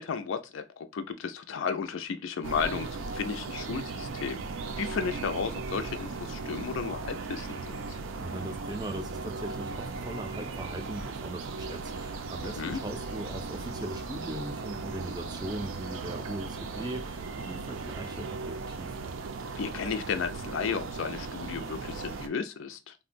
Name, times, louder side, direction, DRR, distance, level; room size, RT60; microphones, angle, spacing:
voice 1, 0.0-4.4 4.8-8.0 12.4-12.8 19.6-22.9, left 6 dB, 80° left, 0.4 m, -34 dB
sound 1, 2.4-22.3, right 4 dB, 85° right, 0.4 m, -37 dB
voice 2, 8.2-19.0, right 1 dB, 20° right, 0.4 m, -39 dB
3.6 x 2.1 x 2.4 m
head